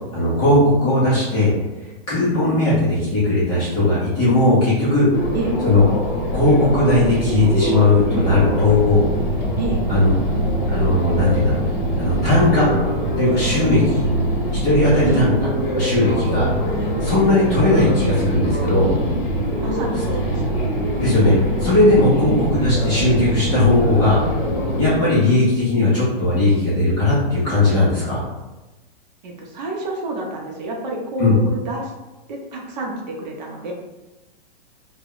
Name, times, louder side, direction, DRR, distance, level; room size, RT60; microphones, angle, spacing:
voice 1, 0.0-1.5 2.1-5.1 5.6-5.8 6.3-9.1 9.9-10.1 10.7-11.6 12.0-12.7 13.2-14.1 14.5-15.3 15.7-16.5 17.0-18.9 21.0-24.2 24.8-28.2 31.2-31.3, left 2 dB, 15° left, -9 dB, 0.4 m, -17 dB
sound 1, 5.1-25.0, equal, 50° left, 0.8 m, -23 dB
voice 2, 19.6-20.7 22.2-22.3 29.2-31.9 32.3-33.7, right 2 dB, 45° right, 0 dB, 0.6 m, -28 dB
2.1 x 2.0 x 3.6 m, 1.1 s
hypercardioid pair, 160°, 30 cm